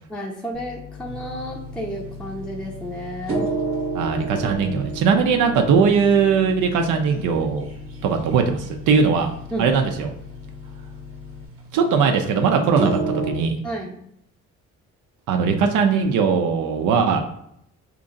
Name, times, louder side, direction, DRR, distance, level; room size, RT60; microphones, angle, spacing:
voice 1, 0.1-3.4 9.5-9.7 13.6-14.0, equal, 5° left, -1 dB, 0.5 m, -31 dB
sound 1, 0.5-11.5, left 8 dB, 65° left, 0.6 m, -41 dB
sound 2, 1.0-13.3, right 3 dB, 45° right, 0.8 m, -32 dB
voice 2, 3.9-7.7 8.0-9.3 9.6-10.1 11.7-13.6 15.3-17.2, right 5 dB, 85° right, 4 dB, 0.5 m, -20 dB
2.9 x 2.6 x 3.8 m, 0.74 s
cardioid pair, 90°, 30 cm